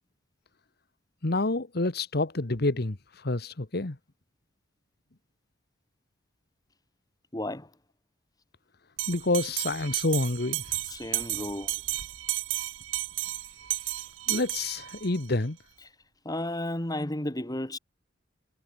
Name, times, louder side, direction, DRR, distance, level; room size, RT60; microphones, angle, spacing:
voice 1, 1.2-4.0 9.1-10.8 14.3-15.6, left 2 dB, 55° left, 1.3 m, -28 dB
voice 2, 7.3-7.7 10.9-11.8 16.2-17.8, left 1 dB, 20° left, 2.2 m, -33 dB
Bell, 9.0-15.2, right 16 dB, 90° right, 0.7 m, -33 dB
head